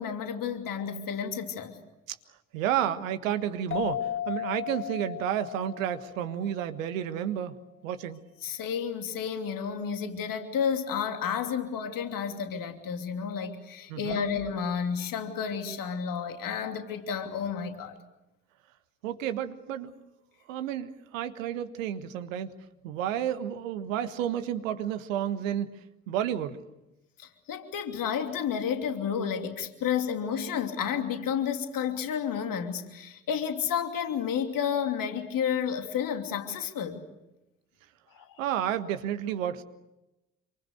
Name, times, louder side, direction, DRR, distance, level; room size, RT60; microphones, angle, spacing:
voice 1, 0.0-1.8 8.4-18.0 27.2-37.1 38.1-38.4, left 7 dB, 55° left, 6 dB, 3.0 m, -31 dB
voice 2, 2.5-7.6 7.8-8.2 13.9-14.2 19.0-19.9 20.5-22.5 22.8-25.7 26.1-26.6 38.4-39.6, right 10 dB, 75° right, 11 dB, 1.5 m, -31 dB
sound 1, 3.7-7.0, left 11 dB, 30° left, 1.6 m, -35 dB
27.5 x 25.0 x 6.7 m, 0.95 s
figure-of-eight pair, 45°, 40 cm